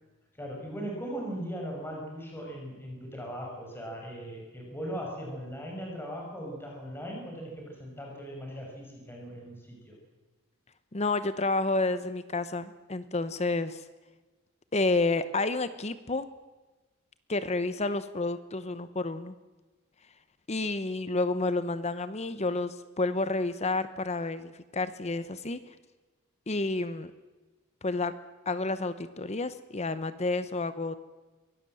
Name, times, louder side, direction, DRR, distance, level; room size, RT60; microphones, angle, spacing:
voice 1, 0.4-9.9, equal, 10° left, 0 dB, 5.7 m, -39 dB
voice 2, 10.9-13.8 14.7-16.3 17.3-19.3 20.5-25.6 26.5-27.1 27.8-28.1 28.5-31.0, left 3 dB, 30° left, 13 dB, 0.9 m, -30 dB
23.5 x 18.0 x 7.8 m, 1.2 s
head